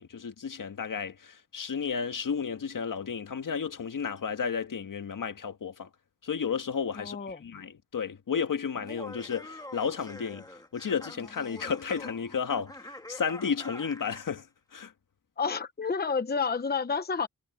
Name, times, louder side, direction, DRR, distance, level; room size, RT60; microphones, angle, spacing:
voice 1, 0.0-5.9 6.2-10.4 10.7-14.5 14.7-14.9, left 6 dB, 70° left, 1.7 m, -32 dB
voice 2, 7.0-7.4 15.4-17.3, left 5 dB, 30° left, 0.8 m, -30 dB
Laughter, 8.7-14.3, left 1 dB, 10° left, 1.9 m, -45 dB
wide cardioid pair, 155°, 33 cm